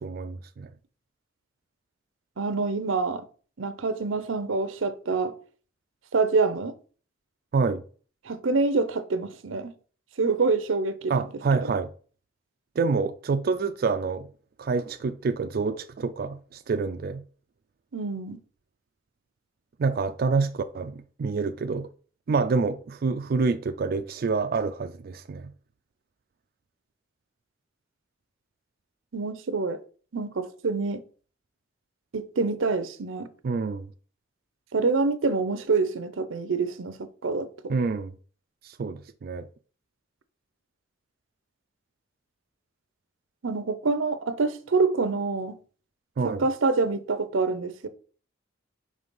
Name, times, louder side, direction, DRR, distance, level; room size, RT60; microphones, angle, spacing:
voice 1, 0.0-0.7 7.5-7.8 11.1-11.9 12.8-14.3 14.6-17.2 19.8-21.9 22.3-25.4 33.4-33.9 37.7-38.1 38.6-39.5 46.2-46.5, right 4 dB, 50° right, 0.3 m, -27 dB
voice 2, 2.4-3.2 3.6-5.4 6.1-6.7 8.2-9.7 10.2-11.7 17.9-18.4 29.1-29.8 30.1-31.0 32.1-33.3 34.7-37.7 43.4-45.6 46.2-47.9, right 4 dB, 90° right, 0.7 m, -26 dB
5.4 x 3.3 x 5.2 m
head